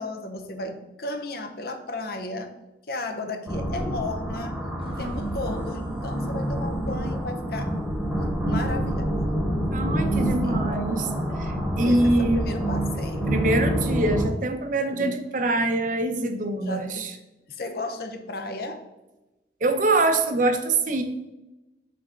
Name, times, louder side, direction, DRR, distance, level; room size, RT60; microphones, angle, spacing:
voice 1, 0.0-2.5 2.9-4.6 4.8-7.7 8.4-9.3 10.4-10.6 11.8-14.3 14.9-15.1 16.6-17.1 17.5-18.8, left 2 dB, 60° left, 7 dB, 0.7 m, -34 dB
sound 1, 3.5-14.3, right 1 dB, 5° right, 1.1 m, -27 dB
sound 2, 4.8-8.0, right 1 dB, 30° right, 1.0 m, -44 dB
voice 2, 9.7-11.1 11.4-12.5 13.3-17.1 19.6-21.0, right 2 dB, 50° right, 7 dB, 0.7 m, -24 dB
7.7 x 3.5 x 3.8 m, 1.0 s
head